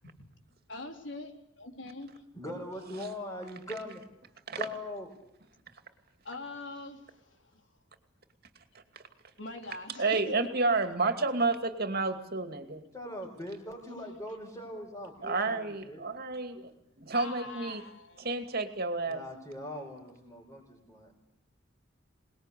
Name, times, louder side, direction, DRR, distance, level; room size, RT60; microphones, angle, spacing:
voice 1, 0.7-2.3 6.2-7.7 9.4-10.3 17.1-18.5, left 2 dB, 70° left, 4 dB, 3.8 m, -44 dB
voice 2, 2.3-4.0 4.6-5.1 12.9-16.1 16.5-16.6 19.0-21.1, left 1 dB, 20° left, -3 dB, 5.2 m, -41 dB
voice 3, 10.0-12.8 15.2-16.7 17.0-17.8 18.2-19.2, right 3 dB, 55° right, 8 dB, 2.5 m, -30 dB
27.0 x 20.0 x 8.5 m, 0.77 s
head